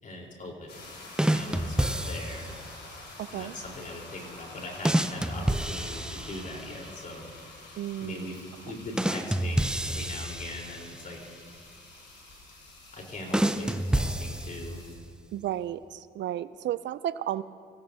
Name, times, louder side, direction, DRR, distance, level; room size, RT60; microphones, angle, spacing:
voice 1, 0.0-0.8 1.2-2.5 3.3-7.3 8.0-11.3 12.9-14.8, left 1 dB, 40° left, 0 dB, 4.0 m, -40 dB
sound 1, 0.7-14.9, left 2 dB, 60° left, 4.5 m, -48 dB
sound 2, 1.2-2.6 4.8-6.8 9.0-11.1 13.3-14.9, right 1 dB, 5° right, 0.5 m, -29 dB
voice 2, 3.2-3.5 7.8-8.3 15.3-17.4, right 12 dB, 65° right, 15 dB, 0.5 m, -33 dB
25.5 x 16.0 x 2.8 m, 2.1 s
cardioid pair, 90°, 20 cm